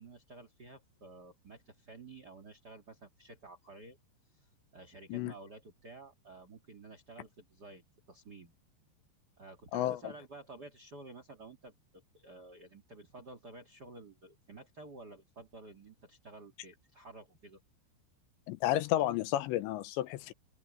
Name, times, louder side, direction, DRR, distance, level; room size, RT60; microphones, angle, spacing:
voice 1, 0.0-4.0 4.3-8.5 9.4-17.6, right 2 dB, 55° right, 1.0 m, -52 dB
voice 2, 18.5-20.3, left 14 dB, 80° left, 3.0 m, -31 dB
omnidirectional pair, 5.3 m